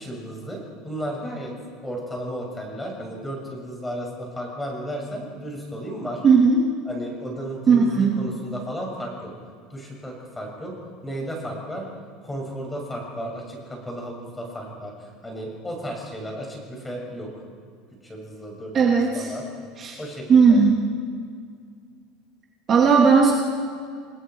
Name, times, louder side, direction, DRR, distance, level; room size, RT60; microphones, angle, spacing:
voice 1, 0.0-1.5 1.8-6.3 6.9-9.3 9.7-10.7 11.0-11.9 12.2-17.3 18.0-19.4 20.0-20.6, equal, 10° left, 0 dB, 6.7 m, -34 dB
voice 2, 6.2-6.6 7.7-8.2 18.7-19.3 19.8-20.0 20.3-20.8 22.7-23.3, right 5 dB, 30° right, -1 dB, 2.8 m, -16 dB
29.5 x 20.0 x 4.7 m, 2.1 s
supercardioid pair, 140°, 0 cm